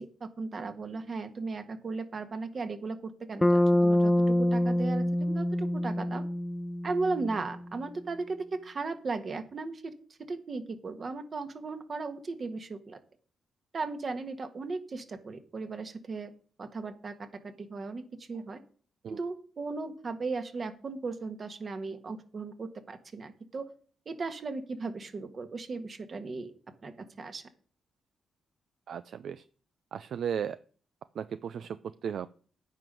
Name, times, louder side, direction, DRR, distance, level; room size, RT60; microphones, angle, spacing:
voice 1, 0.0-6.2 6.8-9.9 10.3-13.0 13.7-16.3 16.6-18.6 19.1-23.7 24.0-26.5 26.8-26.9 27.2-27.4, right 3 dB, 50° right, 8 dB, 1.6 m, -36 dB
Bass guitar, 3.4-7.5, left 1 dB, 15° left, 0.6 m, -26 dB
voice 2, 28.9-29.4 29.9-30.6 31.2-32.3, right 8 dB, 70° right, 14 dB, 0.3 m, -35 dB
9.2 x 5.3 x 7.6 m, 0.43 s
supercardioid pair, 50°, 0 cm